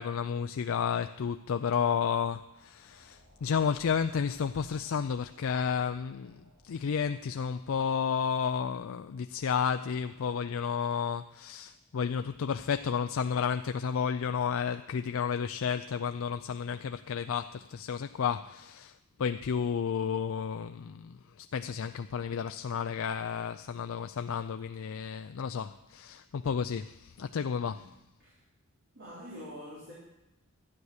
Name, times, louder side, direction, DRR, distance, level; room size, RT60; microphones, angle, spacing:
voice 1, 0.0-27.9, left 6 dB, 65° left, 0.4 m, -32 dB
sound 1, 2.0-13.1, equal, 70° right, 6.0 m, -63 dB
voice 2, 28.9-29.9, equal, 55° right, 3.9 m, -45 dB
12.5 x 9.6 x 6.5 m
head